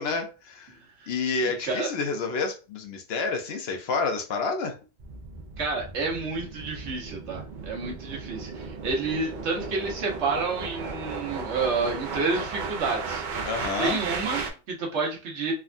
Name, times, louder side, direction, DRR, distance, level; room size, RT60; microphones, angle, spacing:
voice 1, 0.0-0.7 1.1-4.8 13.4-14.0, left 4 dB, 65° left, 0.8 m, -29 dB
voice 2, 0.7-1.1 1.4-1.9 5.6-13.2 13.8-15.5, right 4 dB, 85° right, 1.2 m, -30 dB
sound 1, 5.0-14.5, right 4 dB, 55° right, 0.6 m, -35 dB
3.4 x 2.2 x 2.4 m
omnidirectional pair, 1.2 m